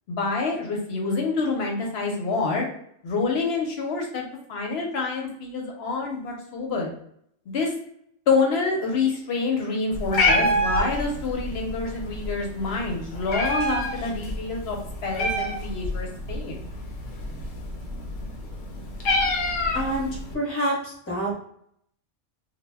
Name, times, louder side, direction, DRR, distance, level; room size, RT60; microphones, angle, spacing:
voice 1, 0.1-2.6 3.0-6.9 7.5-7.7 8.3-16.6, left 4 dB, 65° left, 0 dB, 0.8 m, -27 dB
Meow, 9.9-20.3, left 1 dB, 85° left, 1.0 m, -28 dB
voice 2, 19.7-21.3, right 1 dB, 15° left, -4 dB, 0.6 m, -27 dB
2.1 x 2.0 x 3.3 m, 0.71 s
omnidirectional pair, 1.2 m